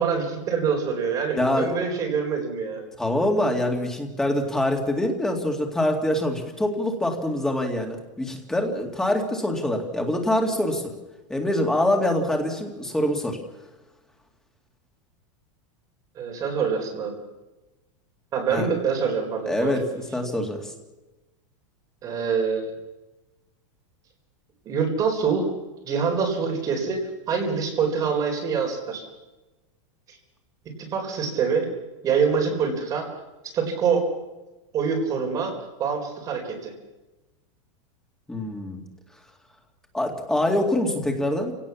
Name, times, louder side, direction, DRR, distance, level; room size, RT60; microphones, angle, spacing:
voice 1, 0.0-2.9 16.2-17.2 18.3-19.8 22.0-22.7 24.6-25.5 25.8-29.0 30.1-30.2 30.8-31.7 32.0-33.1 33.5-34.1 34.7-36.7, right 6 dB, 20° right, 2 dB, 4.2 m, -25 dB
voice 2, 1.4-1.7 3.0-10.9 11.3-13.4 18.5-18.7 19.5-20.7 38.3-38.8 39.9-41.5, left 1 dB, 5° left, 2 dB, 2.2 m, -25 dB
29.0 x 17.5 x 7.2 m, 1.1 s
supercardioid pair, 175°, 16 cm